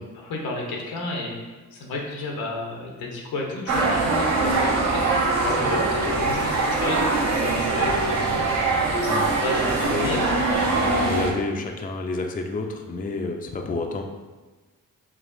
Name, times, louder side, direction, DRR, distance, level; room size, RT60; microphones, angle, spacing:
voice 1, 0.1-1.4 1.7-5.1 5.4-8.6 9.4-10.4, left 2 dB, 90° left, -1 dB, 0.9 m, -32 dB
sound 1, 3.7-11.3, right 3 dB, 50° right, 0.8 m, -22 dB
voice 2, 6.2-6.5 9.1-10.4 10.7-14.0, left 3 dB, 25° left, 3 dB, 0.4 m, -30 dB
5.0 x 2.8 x 2.6 m, 1.3 s
cardioid pair, 65°, 35 cm